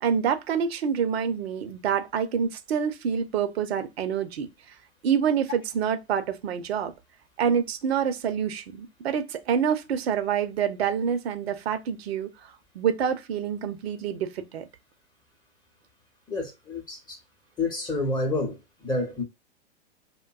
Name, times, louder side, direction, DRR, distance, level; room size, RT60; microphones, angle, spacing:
voice 1, 0.0-4.5 5.0-6.9 7.4-14.6, right 7 dB, 65° right, 0.7 m, -27 dB
voice 2, 16.3-17.2 17.6-18.6 18.8-19.2, left 2 dB, 15° left, 0.8 m, -28 dB
2.5 x 2.2 x 2.4 m
hypercardioid pair, 110°, 34 cm